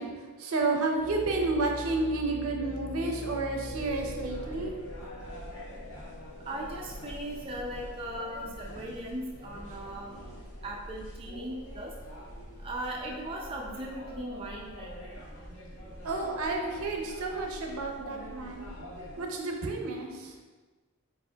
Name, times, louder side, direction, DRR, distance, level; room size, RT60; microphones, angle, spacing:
voice 1, 0.0-4.8 16.0-18.7 19.2-20.3, right 3 dB, 75° right, 2 dB, 0.6 m, -31 dB
sound 1, 1.0-10.9 11.4-11.5 12.2-12.5, equal, 25° left, 0.5 m, -44 dB
sound 2, 3.7-19.3, equal, 65° left, 1.5 m, -45 dB
voice 2, 6.5-10.1 10.6-11.9 12.6-15.2, right 1 dB, 25° right, -2 dB, 0.4 m, -38 dB
4.3 x 4.0 x 2.2 m, 1.3 s
head